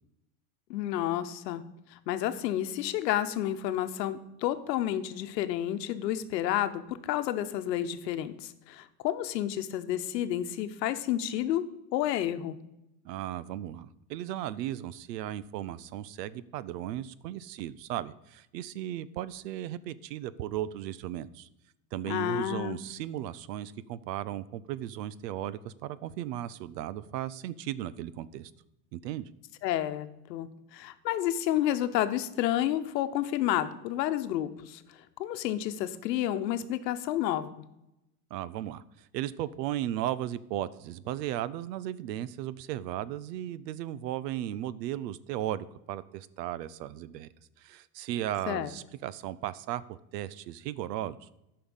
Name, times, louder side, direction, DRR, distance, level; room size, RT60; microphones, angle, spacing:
voice 1, 0.7-1.6 2.1-11.7 11.9-12.6 22.1-22.8 29.6-34.8 35.2-37.5 48.5-48.7, left 12 dB, 85° left, 11 dB, 1.0 m, -30 dB
voice 2, 13.0-21.5 21.9-28.5 28.9-29.3 38.3-47.3 47.6-51.3, right 12 dB, 80° right, 18 dB, 0.7 m, -36 dB
10.5 x 5.8 x 7.2 m, 0.89 s
supercardioid pair, 150°, 49 cm